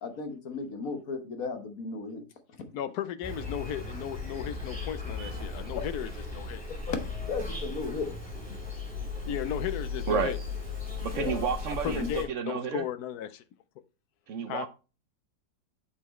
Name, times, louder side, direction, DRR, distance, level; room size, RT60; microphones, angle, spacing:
voice 1, 0.0-2.2 6.9-7.0 7.2-8.2 11.1-11.4 11.9-12.1, left 4 dB, 55° left, 1.4 m, -34 dB
voice 2, 2.7-6.6 9.3-10.4 11.8-13.4 14.5-14.7, left 10 dB, 70° left, 1.0 m, -35 dB
Insect, 3.2-12.2, left 3 dB, 5° left, 3.5 m, -37 dB
voice 3, 11.0-12.8 14.3-14.7, right 6 dB, 65° right, 0.7 m, -31 dB
8.3 x 5.8 x 3.1 m
omnidirectional pair, 2.0 m